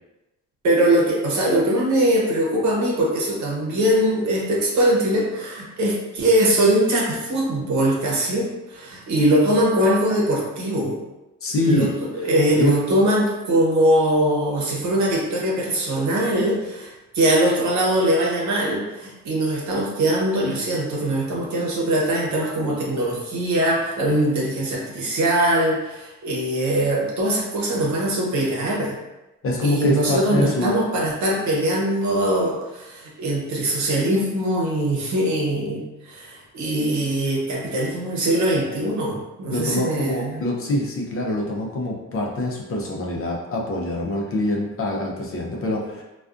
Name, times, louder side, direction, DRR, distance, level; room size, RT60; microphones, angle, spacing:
voice 1, 0.6-11.0 11.6-29.0 29.6-40.4, right 1 dB, 70° right, -2 dB, 0.8 m, -21 dB
voice 2, 11.4-11.9 12.2-12.3 12.6-12.7 29.4-30.8 39.5-46.0, left 1 dB, 45° left, -2 dB, 0.6 m, -24 dB
2.4 x 2.3 x 2.4 m, 1.0 s
cardioid pair, 90°, 30 cm